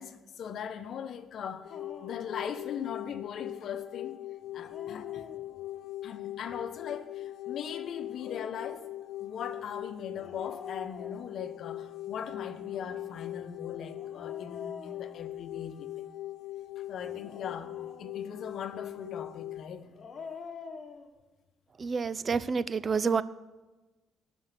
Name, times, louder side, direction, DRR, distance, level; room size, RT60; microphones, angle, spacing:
voice 1, 0.0-1.7 2.0-4.2 4.5-5.2 6.0-8.9 9.2-16.0 16.8-19.9, left 7 dB, 65° left, 10 dB, 1.0 m, -40 dB
sound 1, 1.6-19.7, left 14 dB, 80° left, 0.3 m, -41 dB
Dog, 1.7-2.3 4.4-5.8 7.9-8.7 10.2-11.7 12.6-15.8 17.0-18.4 19.8-21.1, left 5 dB, 45° left, 1.7 m, -47 dB
voice 2, 21.8-23.2, right 5 dB, 40° right, 17 dB, 0.5 m, -28 dB
19.0 x 6.4 x 5.8 m, 1.2 s
cardioid pair, 90°, 0 cm